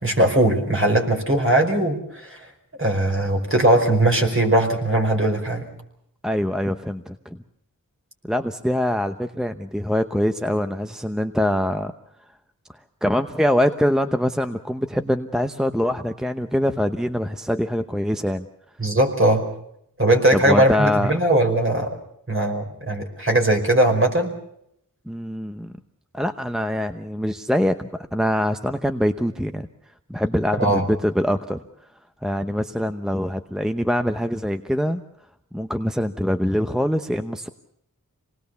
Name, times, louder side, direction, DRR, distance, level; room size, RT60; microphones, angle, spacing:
voice 1, 0.0-2.5 2.8-5.7 18.8-19.4 20.0-22.0 22.3-24.3 30.6-30.9, right 1 dB, 35° right, 2 dB, 5.1 m, -19 dB
voice 2, 6.2-7.2 8.3-11.9 13.0-18.5 20.3-21.1 25.1-25.7 26.1-29.7 30.1-31.6 32.2-35.0 35.5-37.5, equal, ahead, 8 dB, 0.9 m, -23 dB
26.5 x 19.5 x 7.0 m, 0.76 s
wide cardioid pair, 60°, 34 cm